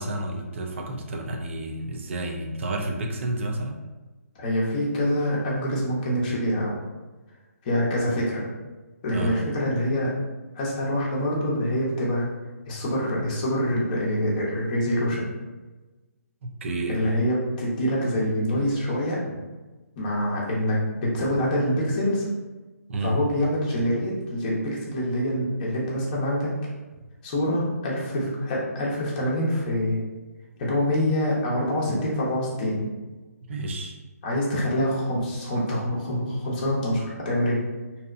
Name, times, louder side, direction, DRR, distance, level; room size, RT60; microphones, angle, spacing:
voice 1, 0.0-3.8 9.1-9.4 16.4-17.0 22.9-23.2 26.9-27.1 33.5-34.0, right 1 dB, 50° right, 2 dB, 0.4 m, -30 dB
voice 2, 4.4-6.8 7.6-8.4 9.0-10.1 10.5-12.3 12.7-15.3 16.9-19.3 20.0-22.3 23.0-26.5 27.2-30.0 30.6-32.9 34.2-37.6, equal, 30° left, -5 dB, 0.7 m, -25 dB
2.7 x 2.1 x 2.4 m, 1.2 s
hypercardioid pair, 155°, 9 cm